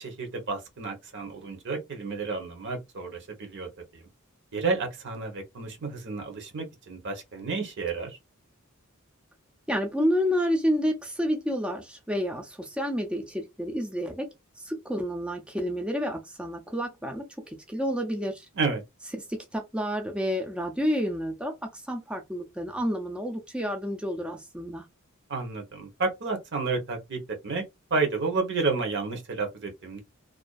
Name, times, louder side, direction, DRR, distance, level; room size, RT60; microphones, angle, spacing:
voice 1, 0.0-4.1 4.5-8.2 18.5-18.8 25.3-27.6 27.9-30.0, right 4 dB, 55° right, 0.9 m, -31 dB
voice 2, 9.7-14.3 14.6-18.5 19.5-24.8, equal, 5° right, 0.4 m, -29 dB
2.4 x 2.3 x 2.3 m
head